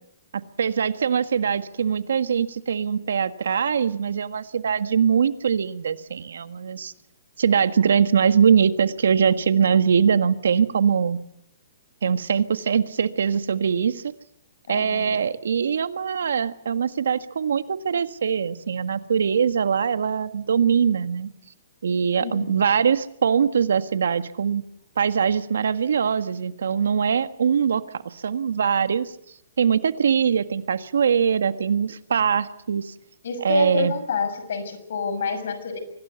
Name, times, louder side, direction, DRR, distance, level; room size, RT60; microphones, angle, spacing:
voice 1, 0.3-6.9 7.4-11.2 12.0-14.0 14.7-21.3 21.8-24.6 25.0-29.1 29.6-32.9 33.4-33.9, right 7 dB, 80° right, 12 dB, 1.6 m, -22 dB
voice 2, 14.7-15.1 22.2-22.5 33.2-35.8, left 5 dB, 70° left, 10 dB, 6.2 m, -28 dB
24.5 x 18.0 x 8.3 m, 0.73 s
hypercardioid pair, 135°, 0 cm